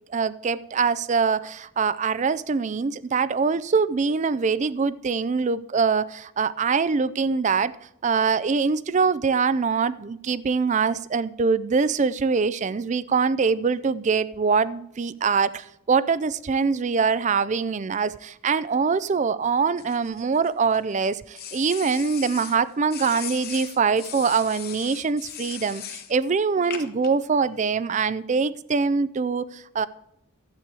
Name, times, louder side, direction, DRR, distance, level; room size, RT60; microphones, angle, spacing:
voice 1, 0.1-7.7 8.0-29.9, right 5 dB, 35° right, 0.4 m, -23 dB
sound 1, 19.8-20.8 21.4-22.6 22.9-26.1 26.7-27.1, left 9 dB, 45° left, 1.1 m, -38 dB
12.0 x 8.3 x 4.7 m
head